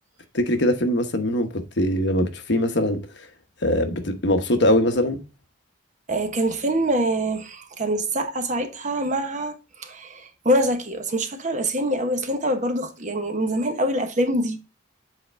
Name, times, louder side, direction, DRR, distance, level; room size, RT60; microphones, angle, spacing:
voice 1, 0.3-3.0 3.6-5.2, left 1 dB, 55° left, 1.0 m, -22 dB
voice 2, 6.1-14.6, right 1 dB, 40° right, 1.1 m, -25 dB
7.8 x 4.2 x 3.4 m
head